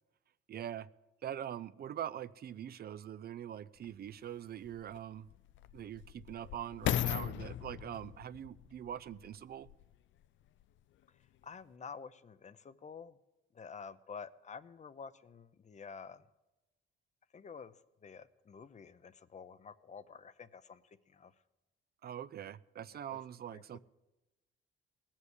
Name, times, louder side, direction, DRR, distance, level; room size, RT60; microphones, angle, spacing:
voice 1, 0.5-0.9 1.2-5.3 5.7-9.7 22.0-23.8, right 10 dB, 50° right, 0.5 m, -43 dB
sound 1, 3.8-3.9 4.6-9.9 10.6-10.7, left 12 dB, 70° left, 0.5 m, -38 dB
voice 2, 11.4-13.2 13.5-16.2 17.3-17.7 18.0-20.8 21.1-21.3 23.1-23.2 23.5-23.6, left 5 dB, 35° left, 0.7 m, -49 dB
18.0 x 7.4 x 8.2 m
cardioid pair, 90°, 20 cm